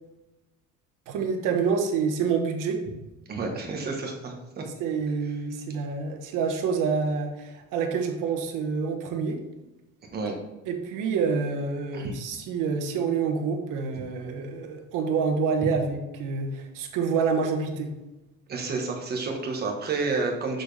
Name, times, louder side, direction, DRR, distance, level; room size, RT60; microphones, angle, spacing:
voice 1, 1.1-2.8 4.8-9.4 10.7-17.9, right 5 dB, 80° right, 3 dB, 1.3 m, -27 dB
voice 2, 3.3-4.6 10.1-10.3 11.9-12.1 18.5-20.6, right 3 dB, 30° right, 1 dB, 1.3 m, -30 dB
6.8 x 6.1 x 3.3 m, 1.0 s
cardioid pair, 180°, 31 cm